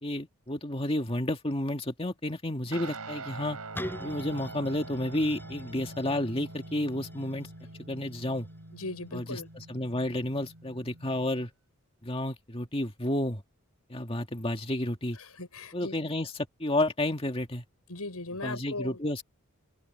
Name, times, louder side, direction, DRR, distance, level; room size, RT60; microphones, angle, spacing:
voice 1, 0.0-3.6 4.0-7.5 7.9-8.5 9.1-11.5 12.0-13.4 13.9-15.2 15.7-17.6 18.4-19.2, left 1 dB, 25° left, 2.0 m, -31 dB
Guitar, 2.7-11.5, right 3 dB, 85° right, 4.7 m, -44 dB
sound 1, 3.7-9.5 10.1-10.2, left 1 dB, 10° left, 7.8 m, -45 dB
voice 2, 8.7-9.5 15.2-15.9 17.9-19.0, left 2 dB, 85° left, 6.3 m, -38 dB
head